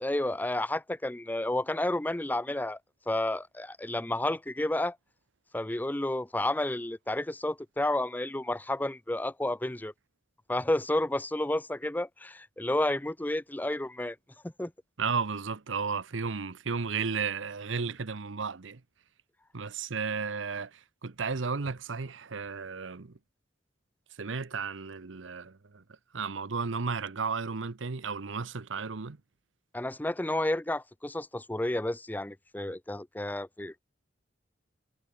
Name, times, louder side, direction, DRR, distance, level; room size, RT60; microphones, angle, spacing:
voice 1, 0.0-2.8 3.1-5.0 5.5-9.9 10.5-14.2 14.4-14.7 29.7-33.8, left 1 dB, 10° left, 0.6 m, -31 dB
voice 2, 15.0-18.8 19.5-23.2 24.2-25.8 26.1-29.2, right 5 dB, 80° right, 0.8 m, -33 dB
head